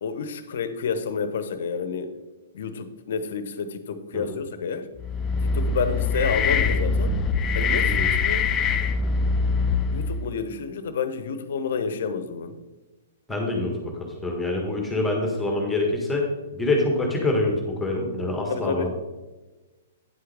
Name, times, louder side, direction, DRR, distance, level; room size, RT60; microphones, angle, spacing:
voice 1, 0.0-2.1 2.5-4.9 5.4-7.1 7.5-8.5 9.9-12.6 18.5-18.9, left 5 dB, 60° left, 11 dB, 0.8 m, -29 dB
sound 1, 5.0-10.3, left 4 dB, 25° left, 0.5 m, -23 dB
voice 2, 13.3-13.9 14.2-16.3 16.5-18.9, left 2 dB, 5° left, 0 dB, 1.7 m, -25 dB
9.6 x 7.7 x 3.5 m, 1.2 s
figure-of-eight pair, 115°, 0 cm